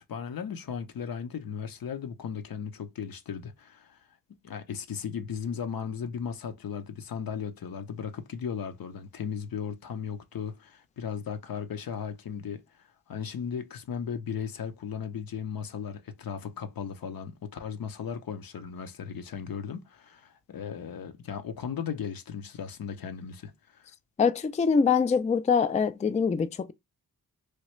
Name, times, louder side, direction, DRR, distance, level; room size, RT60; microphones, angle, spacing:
voice 1, 0.1-4.0 4.4-12.6 13.1-23.9, left 7 dB, 70° left, 0.7 m, -36 dB
voice 2, 24.2-26.7, left 5 dB, 20° left, 0.3 m, -24 dB
3.2 x 2.3 x 3.0 m
cardioid pair, 50°, 37 cm